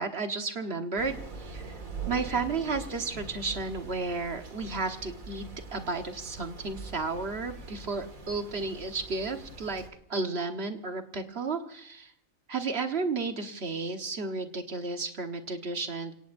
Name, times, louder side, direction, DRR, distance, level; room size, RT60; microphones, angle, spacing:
voice 1, 0.0-1.8 2.1-9.8 10.1-12.1 12.5-16.1, right 4 dB, 50° right, 5 dB, 1.6 m, -33 dB
Thunder / Rain, 1.0-9.9, right 3 dB, 90° right, 2.7 m, -43 dB
29.0 x 17.5 x 2.7 m, 0.65 s
omnidirectional pair, 1.4 m